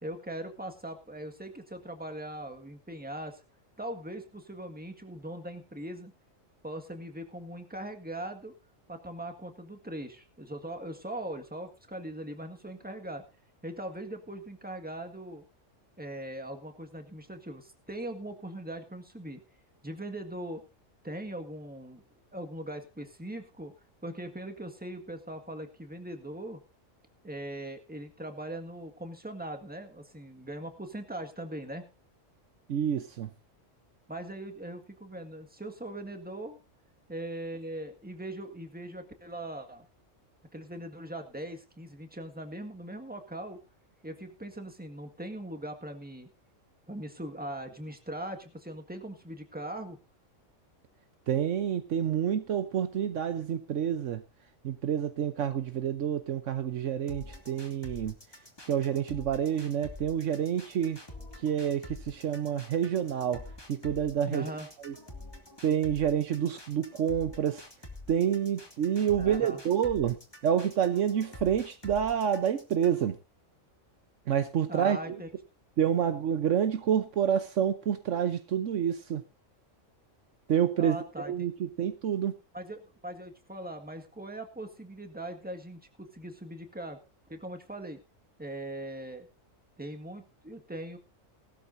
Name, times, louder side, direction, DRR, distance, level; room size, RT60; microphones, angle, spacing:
voice 1, 0.0-3.4 3.8-6.1 6.6-8.5 8.9-13.2 13.6-15.4 16.0-19.4 19.8-20.6 21.0-22.0 22.3-23.7 24.0-26.6 27.2-31.9 34.1-36.6 37.1-39.9 40.5-43.6 44.0-46.3 46.9-50.0 64.3-64.7 69.2-69.6 74.7-75.3 80.8-81.5 82.5-87.0 87.3-88.0 88.4-89.3 89.8-91.0, right 1 dB, 5° right, 5 dB, 1.7 m, -40 dB
voice 2, 32.7-33.3 51.3-54.2 54.6-58.1 58.7-61.0 61.4-63.4 63.7-64.5 64.8-64.9 65.6-67.7 68.1-70.2 70.4-73.2 74.3-75.2 75.8-79.2 80.5-81.0 81.2-82.3, right 9 dB, 70° right, 10 dB, 1.2 m, -28 dB
sound 1, 57.1-73.1, left 2 dB, 20° left, 2.3 m, -47 dB
18.5 x 13.0 x 2.6 m, 0.27 s
omnidirectional pair, 1.3 m